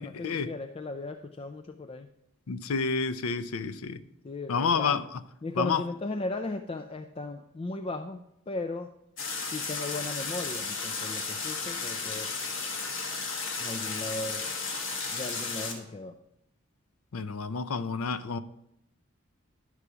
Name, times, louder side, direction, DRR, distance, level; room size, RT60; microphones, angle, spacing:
voice 1, 0.0-2.1 4.2-5.0 5.4-8.9 9.4-12.4 13.6-14.5 15.1-16.2, left 2 dB, 25° left, 0.4 m, -37 dB
voice 2, 2.5-4.0 4.5-5.2 5.6-5.8 17.1-18.4, left 5 dB, 85° left, 0.5 m, -29 dB
sound 1, 9.2-15.7, left 4 dB, 60° left, 1.5 m, -34 dB
11.0 x 4.8 x 6.8 m
head